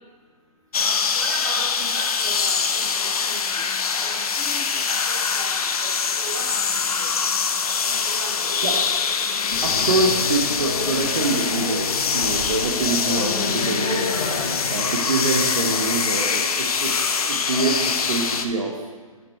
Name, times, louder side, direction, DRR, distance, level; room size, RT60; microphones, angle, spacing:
sound 1, 0.7-18.5, left 5 dB, 80° left, 0.7 m, -24 dB
voice 1, 1.1-7.1 7.7-8.5, right 2 dB, 30° right, -2 dB, 1.3 m, -38 dB
sound 2, 9.5-16.0, left 3 dB, 15° left, 0.4 m, -31 dB
voice 2, 9.6-14.1 14.7-16.9 17.3-18.9, right 3 dB, 60° right, 1 dB, 1.0 m, -25 dB
6.7 x 5.8 x 4.3 m, 1.4 s
hypercardioid pair, 175°, 19 cm